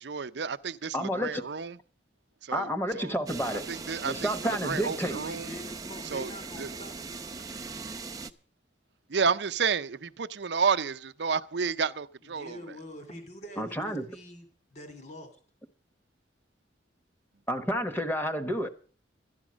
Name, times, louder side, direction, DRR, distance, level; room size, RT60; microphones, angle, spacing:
voice 1, 0.0-1.8 2.4-2.7 2.9-3.1 3.7-5.5 6.1-6.3 6.6-6.7 9.1-12.6, right 5 dB, 70° right, 0.6 m, -30 dB
voice 2, 0.9-1.4 2.5-3.7 4.0-5.2 13.6-14.1 17.5-18.7, equal, 10° left, 1.1 m, -30 dB
sound 1, 3.3-8.3, right 4 dB, 20° right, 0.6 m, -39 dB
voice 3, 5.2-7.5 12.2-15.4, left 1 dB, 40° left, 2.6 m, -45 dB
12.5 x 11.0 x 6.2 m
head